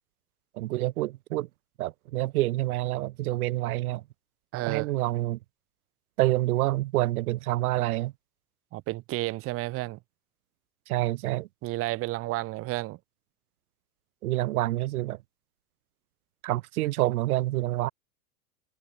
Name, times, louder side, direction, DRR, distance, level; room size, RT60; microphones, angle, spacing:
voice 1, 0.6-1.5 1.8-4.0 4.7-5.4 6.2-8.1 10.9-11.5 14.2-15.2 16.4-17.9, right 17 dB, 75° right, 0.7 m, -27 dB
voice 2, 4.5-4.9 8.7-10.0 11.6-13.0, right 19 dB, 30° right, 0.6 m, -31 dB
hypercardioid pair, 90°, 45 cm